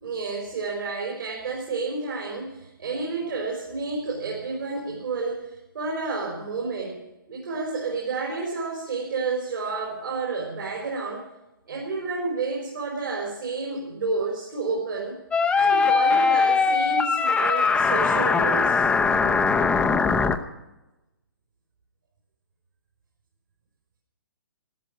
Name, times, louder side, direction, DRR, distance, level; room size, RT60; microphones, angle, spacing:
voice 1, 0.0-5.5 5.7-7.0 7.3-11.3 11.7-15.2 15.5-18.9, right 4 dB, 70° right, -2 dB, 4.7 m, -30 dB
sound 1, 15.3-20.4, left 5 dB, 10° left, 0.7 m, -21 dB
13.5 x 13.0 x 6.5 m, 0.99 s
hypercardioid pair, 135°, 12 cm